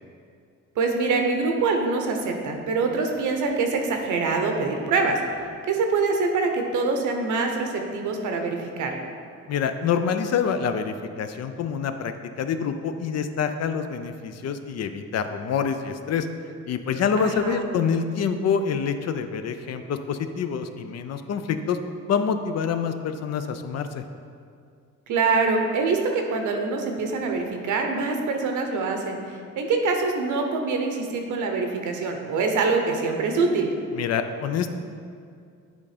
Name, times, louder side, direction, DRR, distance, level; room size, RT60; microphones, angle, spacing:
voice 1, 0.8-5.2 5.7-9.0 17.2-17.7 25.1-33.7, right 4 dB, 75° right, 3 dB, 0.9 m, -24 dB
voice 2, 9.5-16.3 16.7-21.8 22.1-24.0 34.0-34.7, left 6 dB, 55° left, 8 dB, 0.5 m, -26 dB
8.2 x 3.6 x 5.0 m, 2.3 s
cardioid pair, 90°, 30 cm